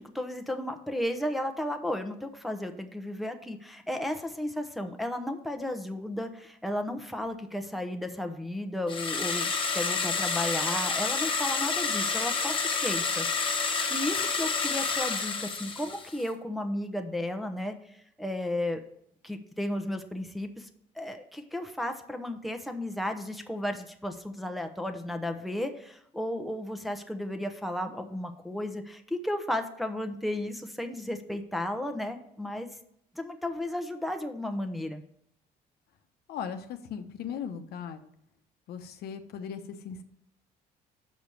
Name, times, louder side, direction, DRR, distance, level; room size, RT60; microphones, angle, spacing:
voice 1, 0.0-13.3 13.6-18.8 19.2-32.7 33.1-35.0, left 1 dB, ahead, 5 dB, 0.8 m, -34 dB
sound 1, 8.9-16.2, left 4 dB, 30° left, 1.2 m, -29 dB
voice 2, 36.3-38.0 38.7-40.0, left 7 dB, 70° left, 7 dB, 0.9 m, -38 dB
6.3 x 5.1 x 6.9 m, 0.73 s
cardioid pair, 110°, 17 cm